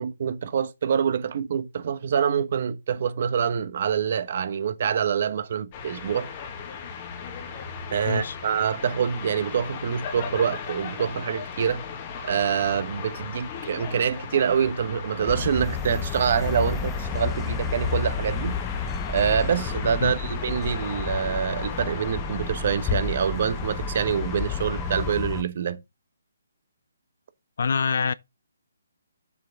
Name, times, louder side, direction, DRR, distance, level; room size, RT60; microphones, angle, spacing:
voice 1, 0.0-6.3 7.9-11.8 12.2-18.6 19.1-25.8, right 7 dB, 45° right, 1.0 m, -26 dB
sound 1, 5.7-25.1, left 5 dB, 25° left, 1.6 m, -36 dB
voice 2, 8.0-8.4 20.0-20.1 27.6-28.1, left 5 dB, 60° left, 0.5 m, -25 dB
sound 2, 15.3-25.4, left 5 dB, 10° left, 0.7 m, -31 dB
7.3 x 6.7 x 3.6 m
hypercardioid pair, 165°, 0 cm